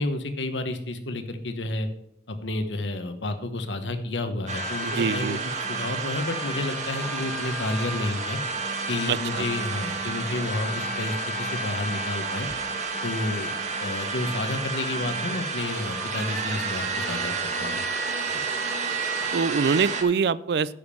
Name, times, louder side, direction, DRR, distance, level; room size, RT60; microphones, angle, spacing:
voice 1, 0.0-1.9 2.3-8.4 8.9-12.5 13.0-13.5 13.8-17.8 18.3-18.4, left 2 dB, 90° left, 8 dB, 1.1 m, -30 dB
sound 1, 4.5-20.0, right 3 dB, 40° right, 1.3 m, -30 dB
voice 2, 4.8-5.4 9.1-9.4 19.3-20.7, right 5 dB, 65° right, 19 dB, 0.4 m, -24 dB
10.5 x 5.2 x 6.9 m, 0.77 s
head